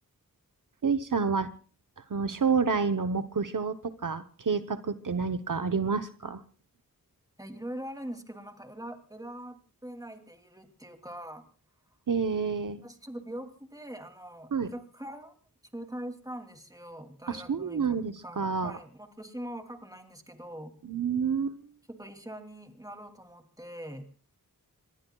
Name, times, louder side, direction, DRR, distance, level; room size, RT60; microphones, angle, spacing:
voice 1, 0.8-1.5 2.0-6.4 12.1-12.8 14.5-14.7 17.3-18.8 20.8-21.7, right 5 dB, 65° right, 9 dB, 0.9 m, -29 dB
voice 2, 7.4-11.4 12.8-15.3 15.7-20.7 21.9-24.1, right 1 dB, 10° right, 5 dB, 2.7 m, -42 dB
26.5 x 20.5 x 2.3 m, 0.37 s
wide cardioid pair, 55°, 35 cm